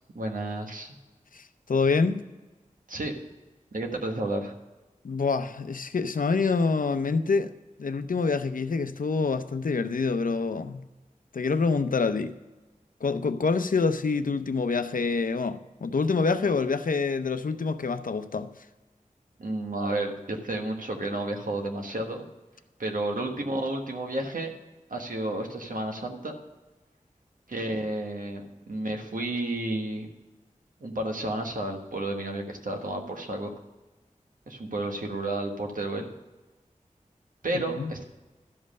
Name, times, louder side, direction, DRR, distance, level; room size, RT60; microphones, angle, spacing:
voice 1, 0.1-1.0 2.9-3.1 3.7-4.5 19.4-22.2 22.8-24.5 24.9-26.4 27.5-30.1 30.8-33.5 34.5-36.1 37.4-38.0, right 1 dB, 80° right, 1.4 m, -31 dB
voice 2, 1.3-2.2 5.0-7.5 7.8-10.9 11.3-12.3 13.0-18.5 37.7-37.9, left 4 dB, 85° left, 0.6 m, -26 dB
12.5 x 5.3 x 6.5 m
wide cardioid pair, 60°, 14 cm